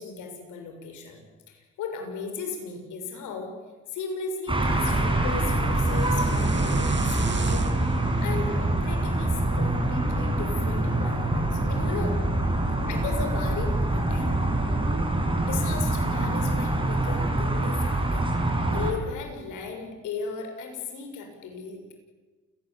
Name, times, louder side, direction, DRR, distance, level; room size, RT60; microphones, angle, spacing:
voice 1, 0.0-3.5 3.9-7.7 8.2-12.2 12.8-14.3 15.4-18.2 18.7-21.9, left 5 dB, 85° left, 4 dB, 6.7 m, -36 dB
sound 1, 4.5-18.9, right 2 dB, 15° right, 6.5 m, -25 dB
sound 2, 5.7-9.9, right 4 dB, 35° right, 2.4 m, -35 dB
29.0 x 18.0 x 8.7 m, 1.3 s
cardioid pair, 90°, 30 cm